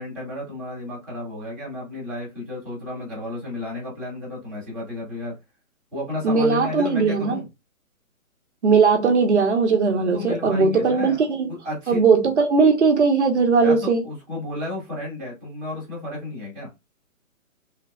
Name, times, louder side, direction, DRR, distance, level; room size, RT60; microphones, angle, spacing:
voice 1, 0.0-5.3 5.9-7.5 10.1-11.2 11.5-12.0 13.6-16.7, left 2 dB, ahead, 0.9 m, -32 dB
voice 2, 6.2-7.4 8.6-11.5 11.9-14.0, right 4 dB, 55° right, 0.7 m, -19 dB
3.2 x 2.0 x 2.4 m
hypercardioid pair, 170°, 42 cm